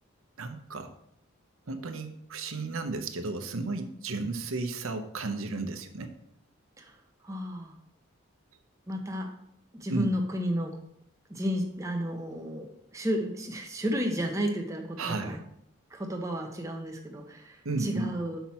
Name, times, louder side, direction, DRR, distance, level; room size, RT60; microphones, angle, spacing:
voice 1, 0.4-0.9 1.7-6.1 9.9-10.1 15.0-15.4 17.6-18.1, right 3 dB, 90° right, 7 dB, 0.8 m, -33 dB
voice 2, 7.2-7.7 8.9-9.3 9.7-10.8 11.3-12.7 12.9-15.4 15.9-18.4, equal, 15° right, 2 dB, 0.8 m, -32 dB
5.9 x 5.7 x 4.3 m, 0.76 s
head